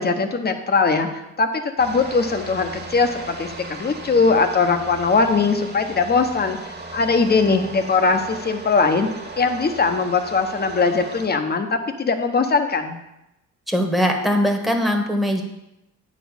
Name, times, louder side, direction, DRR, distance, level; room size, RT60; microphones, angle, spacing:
voice 1, 0.0-6.6 6.9-9.1 9.4-11.7 12.0-13.0, left 4 dB, 35° left, 6 dB, 1.1 m, -20 dB
sound 1, 1.8-11.3, right 3 dB, 35° right, 2.0 m, -37 dB
voice 2, 13.7-15.4, equal, ahead, 3 dB, 1.4 m, -20 dB
9.0 x 4.2 x 7.1 m, 0.89 s
cardioid pair, 90°, 30 cm